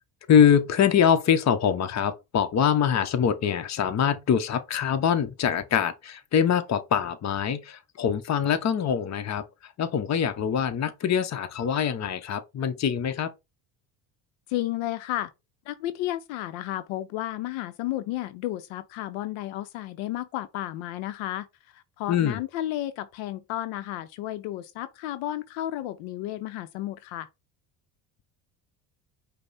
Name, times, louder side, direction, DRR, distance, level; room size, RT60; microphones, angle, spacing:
voice 1, 0.3-9.4 9.8-13.3 22.1-22.4, left 8 dB, 35° left, 0.8 m, -24 dB
voice 2, 14.5-15.3 15.7-27.3, left 14 dB, 75° left, 0.6 m, -32 dB
5.2 x 2.1 x 4.0 m
supercardioid pair, 75°, 47 cm